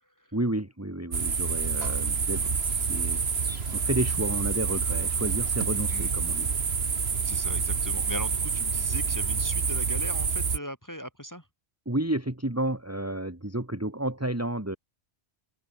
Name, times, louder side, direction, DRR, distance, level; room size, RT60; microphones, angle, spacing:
voice 1, 0.3-6.5 11.9-14.8, right 1 dB, 15° right, 2.3 m, -31 dB
sound 1, 1.1-10.6, right 5 dB, 70° right, 1.8 m, -27 dB
voice 2, 7.2-11.4, equal, 15° left, 3.2 m, -39 dB
open air
omnidirectional pair, 1.1 m